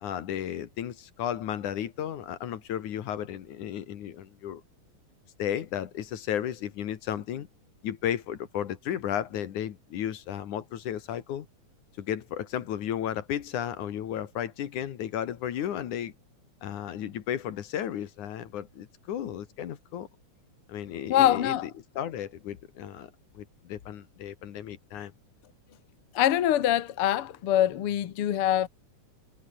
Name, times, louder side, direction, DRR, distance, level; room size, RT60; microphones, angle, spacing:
voice 1, 0.0-4.6 5.4-7.5 7.8-11.5 12.0-16.1 16.6-20.1 20.7-21.7 22.0-23.1 23.3-25.1, left 10 dB, 70° left, 3.0 m, -34 dB
voice 2, 21.1-21.6 26.2-28.7, left 12 dB, 55° left, 1.8 m, -24 dB
omnidirectional pair, 3.6 m